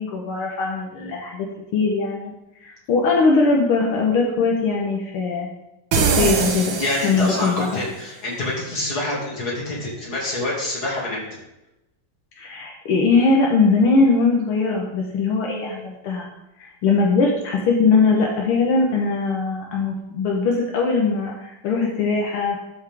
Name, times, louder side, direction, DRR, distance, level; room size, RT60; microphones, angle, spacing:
voice 1, 0.0-1.5 1.7-2.3 2.6-5.5 6.2-6.8 7.0-7.7 12.4-16.3 16.6-22.6, left 4 dB, 80° left, -1 dB, 2.0 m, -20 dB
sound 1, 5.9-7.7, right 5 dB, 65° right, 1.7 m, -22 dB
voice 2, 6.8-11.2, left 1 dB, 45° left, -5 dB, 3.1 m, -26 dB
12.0 x 5.6 x 3.5 m, 0.92 s
omnidirectional pair, 2.3 m